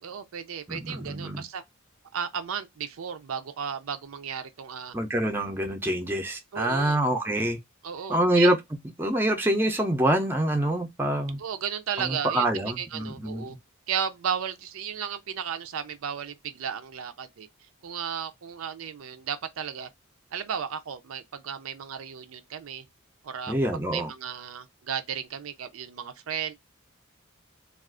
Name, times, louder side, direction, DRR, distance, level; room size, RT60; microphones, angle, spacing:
voice 1, 0.0-1.6 2.1-4.9 6.5-7.0 7.8-8.5 11.4-13.6 13.9-17.5 17.8-19.9 20.3-22.8 23.2-23.5 23.9-26.5, right 8 dB, 75° right, 0.4 m, -34 dB
voice 2, 0.7-1.4 4.9-7.6 8.1-8.6 9.0-11.4 12.0-13.6 23.5-24.1, right 1 dB, 10° right, 0.5 m, -26 dB
2.4 x 2.4 x 3.5 m
head